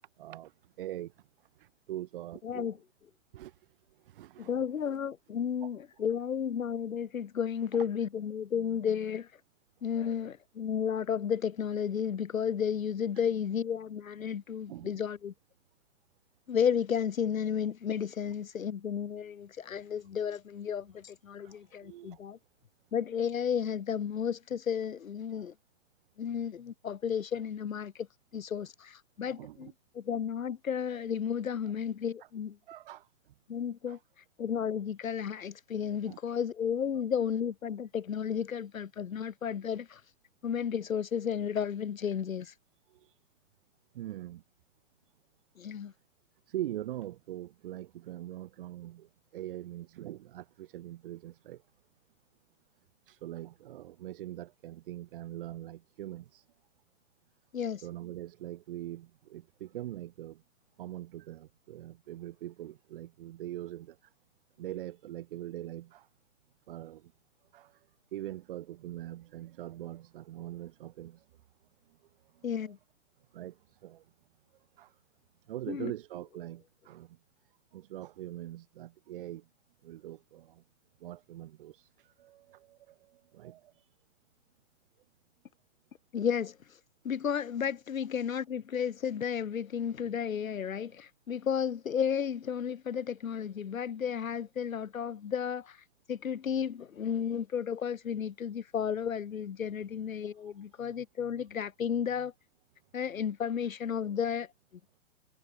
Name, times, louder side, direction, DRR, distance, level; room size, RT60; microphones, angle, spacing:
voice 1, 0.2-0.5 0.8-1.1 1.6-2.7 3.3-3.5 4.1-4.5 4.9-5.0 5.6-5.7 14.7-14.9 21.4-22.2 29.3-29.7 32.7-33.1 33.9-34.0 36.1-36.2 42.9-43.1 43.9-44.4 46.5-51.6 53.1-56.4 57.8-60.4 60.8-64.0 64.6-66.1 66.7-67.1 67.5-67.8 68.1-71.2 72.4-72.7 73.3-74.0 74.8-74.9 75.5-77.2 77.7-79.5 79.8-80.6 81.0-81.8 82.2-83.7, right 13 dB, 40° right, 3.5 m, -42 dB
voice 2, 2.4-2.8 4.4-9.3 9.8-15.3 16.5-22.4 22.9-25.5 26.2-28.1 28.3-32.6 33.5-34.0 34.4-40.0 40.4-42.5 45.6-45.9 57.5-57.8 72.4-72.8 75.7-75.9 86.1-86.6 87.0-95.8 96.1-102.3 102.9-104.5, left 8 dB, 70° left, 7.6 m, -33 dB
hypercardioid pair, 165°, 41 cm